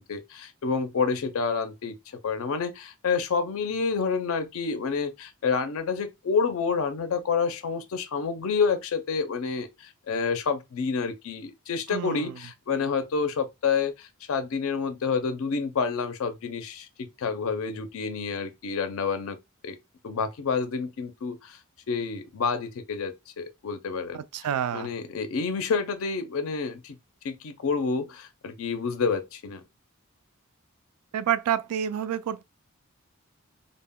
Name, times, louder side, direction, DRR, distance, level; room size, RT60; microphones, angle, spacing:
voice 1, 0.0-1.9 2.2-19.4 19.6-19.8 20.0-21.6 21.9-24.2 24.7-27.0 27.2-29.6, left 5 dB, 70° left, 0.4 m, -28 dB
voice 2, 11.9-12.3 24.1-24.9 31.1-32.4, right 9 dB, 90° right, 0.3 m, -28 dB
2.1 x 2.0 x 3.4 m
head